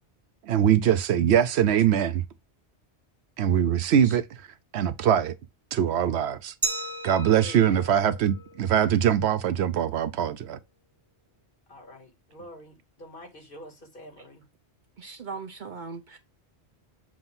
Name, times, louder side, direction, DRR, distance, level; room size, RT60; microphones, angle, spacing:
voice 1, 0.5-2.2 3.4-4.2 4.7-5.3 5.7-6.5 7.0-10.6, right 9 dB, 75° right, 0.9 m, -22 dB
Glass, 6.6-9.3, right 2 dB, 30° right, 1.0 m, -35 dB
voice 2, 7.4-8.0 11.7-14.4, equal, 50° left, 1.9 m, -46 dB
voice 3, 15.0-16.2, right 4 dB, 50° right, 0.7 m, -39 dB
7.6 x 2.7 x 5.5 m
omnidirectional pair, 1.1 m